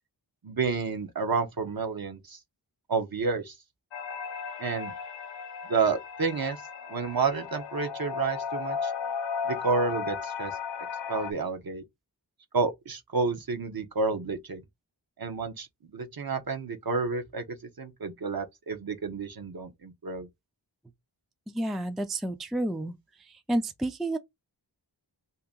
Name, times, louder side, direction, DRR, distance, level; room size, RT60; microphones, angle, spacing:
voice 1, 0.4-2.4 2.9-3.6 4.6-4.9 5.6-6.6 6.9-8.9 9.4-10.6 11.1-11.8 12.5-14.6 15.2-20.3, right 4 dB, 55° right, 0.8 m, -30 dB
sound 1, 3.9-11.3, left 6 dB, 85° left, 0.7 m, -35 dB
voice 2, 21.5-23.0 23.3-24.2, right 1 dB, ahead, 0.4 m, -30 dB
2.8 x 2.6 x 3.7 m
wide cardioid pair, 90°, 43 cm